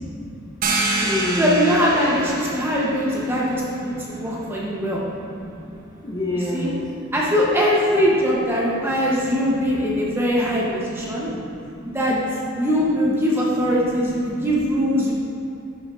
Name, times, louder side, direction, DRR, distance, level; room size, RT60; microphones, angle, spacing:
voice 1, 0.0-1.7 2.5-6.8 8.9-9.1 9.8-10.5 10.8-12.2 14.2-14.5, left 1 dB, 20° left, -4 dB, 0.9 m, -33 dB
sound 1, 0.6-6.0, right 2 dB, 40° right, 0.7 m, -28 dB
voice 2, 1.4-5.0 6.5-6.7 7.1-11.3 11.9-12.2 12.5-15.1, equal, 10° right, -5 dB, 0.8 m, -21 dB
11.0 x 6.2 x 2.5 m, 2.6 s
head